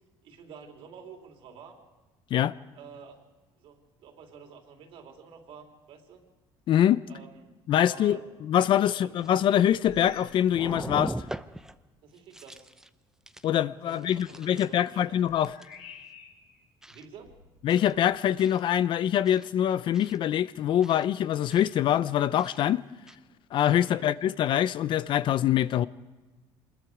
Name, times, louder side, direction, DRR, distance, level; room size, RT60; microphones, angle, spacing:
voice 1, 0.2-1.8 2.7-3.2 3.6-6.2 7.1-7.3 7.8-8.2 8.8-9.2 12.0-12.7 13.8-15.2 16.9-17.4 23.8-24.1, right 6 dB, 65° right, 3.4 m, -49 dB
voice 2, 6.7-7.0 7.7-11.1 13.4-15.5 17.6-22.8 23.5-25.9, left 10 dB, 55° left, 0.6 m, -24 dB
sound 1, 9.2-10.1 10.5-11.8 12.2-12.9 13.3-13.5 13.9-14.9 15.4-15.8 16.8-17.0 17.7-17.9 18.4-18.6 19.2-19.5 19.9-20.2 20.8-21.0 21.5-21.7 22.4-22.6 23.1-23.2, right 1 dB, 5° right, 0.7 m, -41 dB
sound 2, 9.8-10.5 10.8-11.1 11.8-11.9 14.3-16.6 17.1-18.2, left 6 dB, 85° left, 3.4 m, -51 dB
25.0 x 21.0 x 4.9 m
cardioid pair, 110°, 10 cm